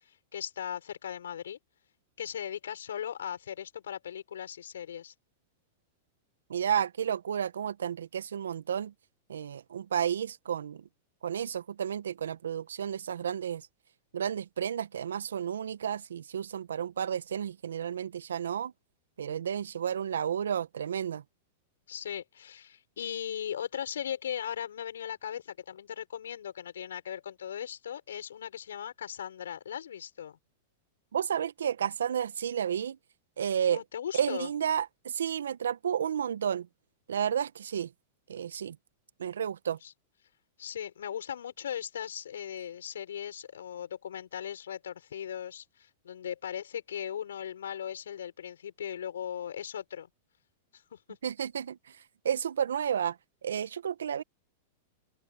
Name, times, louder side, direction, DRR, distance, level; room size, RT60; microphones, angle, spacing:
voice 1, 0.3-1.6 2.2-5.1 21.9-30.4 33.6-34.5 39.8-39.9 40.6-50.1 50.7-51.2, left 9 dB, 75° left, 6.8 m, -38 dB
voice 2, 6.5-8.9 9.3-10.8 11.2-13.7 14.1-18.7 19.2-21.2 31.1-33.0 33.4-33.8 34.1-36.7 37.1-37.9 38.3-38.8 39.2-39.8 51.2-52.0 52.2-53.2 53.4-54.2, right 8 dB, 80° right, 1.4 m, -31 dB
open air
hypercardioid pair, 105°, 0 cm